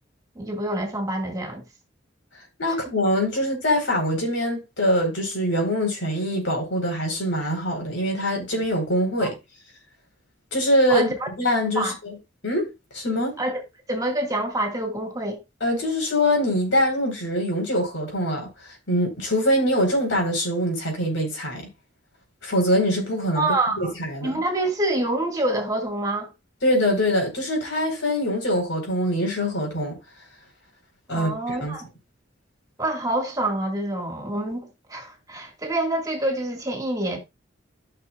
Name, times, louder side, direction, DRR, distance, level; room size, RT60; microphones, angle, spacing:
voice 1, 0.4-1.6 2.7-2.8 9.2-9.3 10.9-11.3 11.8-11.9 13.4-13.6 13.9-15.4 23.4-23.9 24.2-26.3 31.1-31.9 32.8-37.2, right 1 dB, 20° right, 1.8 m, -26 dB
voice 2, 2.6-9.4 10.5-12.1 12.4-13.4 15.6-21.7 22.4-24.4 26.6-30.0 31.1-31.8, equal, 75° left, 4.2 m, -24 dB
14.0 x 6.0 x 2.4 m
head